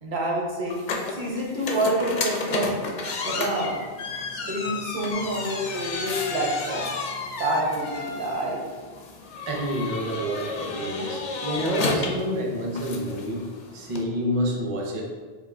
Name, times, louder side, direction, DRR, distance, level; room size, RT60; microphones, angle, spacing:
voice 1, 0.0-0.8 1.1-2.8 3.2-3.8 4.3-6.9 7.4-8.6, right 1 dB, 55° right, -2 dB, 1.0 m, -27 dB
sound 1, 0.7-14.0, left 4 dB, 55° left, 0.6 m, -32 dB
voice 2, 9.5-15.0, equal, 40° right, -1 dB, 0.6 m, -28 dB
6.8 x 2.5 x 2.5 m, 1.5 s
omnidirectional pair, 1.0 m